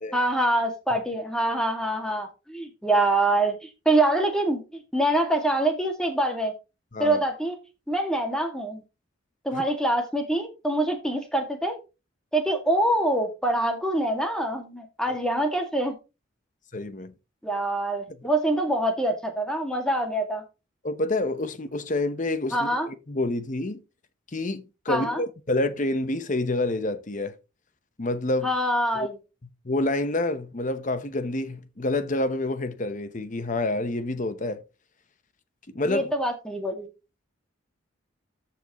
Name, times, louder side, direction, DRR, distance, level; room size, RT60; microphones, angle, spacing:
voice 1, 0.1-6.5 7.0-7.6 7.9-8.8 9.4-11.8 12.3-16.0 17.4-20.4 22.5-22.9 24.9-25.2 28.4-29.2 35.9-36.9, right 1 dB, 5° left, 2.1 m, -25 dB
voice 2, 16.7-17.1 20.8-23.8 24.3-27.3 28.0-28.5 28.9-29.1 29.6-34.6 35.7-36.1, left 2 dB, 40° left, 0.9 m, -28 dB
13.5 x 6.0 x 3.0 m
head